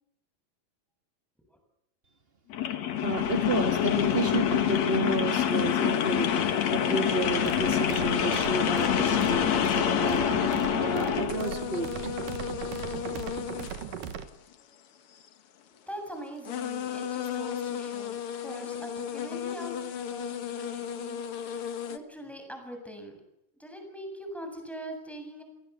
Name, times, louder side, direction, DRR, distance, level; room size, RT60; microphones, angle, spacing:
sound 1, 2.5-11.4, left 9 dB, 50° left, 2.5 m, -26 dB
voice 1, 3.0-12.1, right 2 dB, 85° right, 7 dB, 0.5 m, -32 dB
sound 2, 4.9-5.1 5.5-10.5 10.9-15.3 16.1-16.2 16.4-22.0, left 8 dB, 75° left, 1.2 m, -37 dB
sound 3, 7.2-14.3, right 8 dB, 65° right, 3.0 m, -38 dB
voice 2, 15.9-23.2 23.5-25.4, equal, ahead, 4 dB, 7.2 m, -42 dB
30.0 x 22.5 x 7.0 m, 0.80 s
omnidirectional pair, 4.5 m